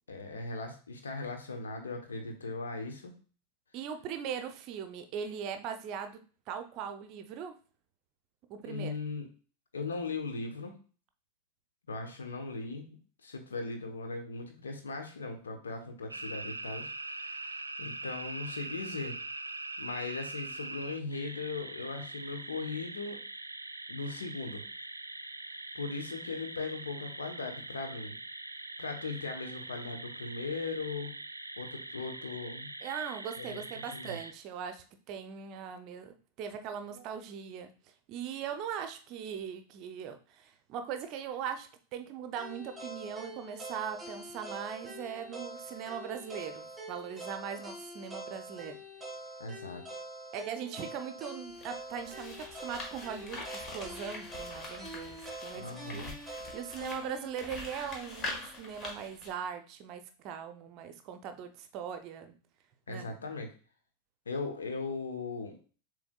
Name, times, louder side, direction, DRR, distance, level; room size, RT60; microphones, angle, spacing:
voice 1, 0.1-3.1 8.6-9.3 9.7-10.7 11.9-19.2 19.8-23.2 23.9-24.6 25.7-28.2 28.8-31.1 31.6-32.7 33.4-33.6 33.9-34.2 49.4-49.8 55.5-56.1 62.9-63.5 64.3-65.6, left 3 dB, 70° left, 4 dB, 1.0 m, -38 dB
voice 2, 3.7-6.2 6.5-7.6 8.5-8.9 32.8-37.7 38.1-48.8 50.3-55.6 55.9-62.3 62.9-63.1, right 8 dB, 40° right, 8 dB, 0.6 m, -40 dB
sound 1, 16.1-34.3, right 2 dB, 80° right, 0.3 m, -43 dB
sound 2, 42.4-58.5, right 1 dB, 10° right, 2.3 m, -45 dB
sound 3, 51.5-59.3, left 2 dB, 30° left, 1.5 m, -44 dB
7.0 x 3.3 x 2.3 m, 0.39 s
figure-of-eight pair, 90°, 0 cm